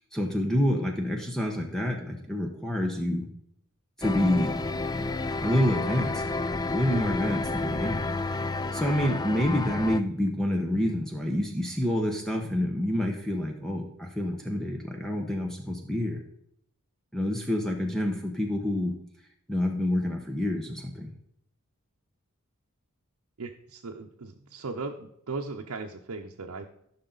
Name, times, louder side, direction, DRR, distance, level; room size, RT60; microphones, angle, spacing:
voice 1, 0.1-3.3 4.0-4.6 5.4-6.2 6.7-8.1 8.7-16.2 17.1-18.9 19.5-21.1, left 1 dB, ahead, 1 dB, 0.9 m, -28 dB
sound 1, 4.0-10.0, left 3 dB, 20° left, 0.3 m, -30 dB
voice 2, 23.4-26.7, right 3 dB, 80° right, 1 dB, 0.7 m, -37 dB
14.0 x 5.8 x 3.9 m, 0.72 s
head